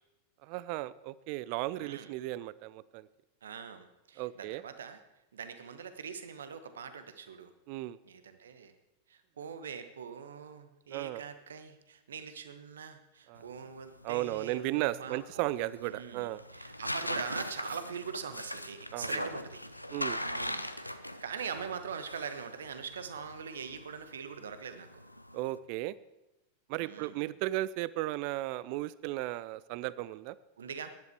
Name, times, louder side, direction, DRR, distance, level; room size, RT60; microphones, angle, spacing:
voice 1, 0.4-3.1 4.2-4.6 7.7-8.0 10.9-11.2 13.3-13.5 14.0-16.4 18.9-19.3 19.9-20.2 25.3-26.0 26.7-30.4, right 16 dB, 45° right, 19 dB, 0.5 m, -35 dB
voice 2, 1.8-2.1 3.4-5.0 5.3-7.5 8.0-8.7 9.1-15.4 15.8-19.6 20.2-20.6 20.9-25.0 26.8-27.3 30.6-30.9, right 6 dB, 65° right, 10 dB, 1.2 m, -43 dB
sound 1, 13.4-25.6, left 1 dB, 90° left, 0.6 m, -41 dB
16.5 x 11.0 x 4.6 m, 0.97 s
figure-of-eight pair, 90°, 0 cm